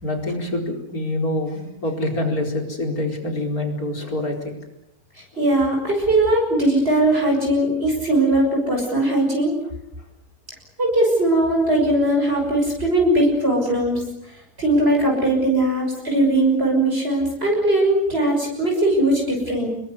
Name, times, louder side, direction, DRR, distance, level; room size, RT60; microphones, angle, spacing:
voice 1, 0.0-4.6, left 1 dB, 80° left, 2 dB, 5.1 m, -26 dB
voice 2, 5.4-9.6 10.8-14.0 14.6-19.7, right 1 dB, 40° right, 0 dB, 6.4 m, -19 dB
28.0 x 21.0 x 8.1 m, 0.86 s
omnidirectional pair, 1.5 m